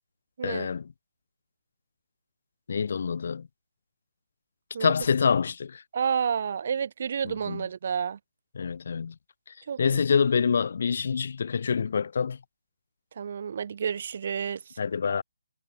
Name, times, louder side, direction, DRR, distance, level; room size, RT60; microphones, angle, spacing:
voice 1, 0.4-0.9 2.7-3.5 4.8-5.8 7.2-7.6 8.5-9.1 9.8-12.4 14.8-15.2, left 6 dB, 50° left, 1.1 m, -26 dB
voice 2, 5.9-8.2 9.7-10.0 13.2-14.6, right 7 dB, 45° right, 1.6 m, -30 dB
figure-of-eight pair, 145°, 0 cm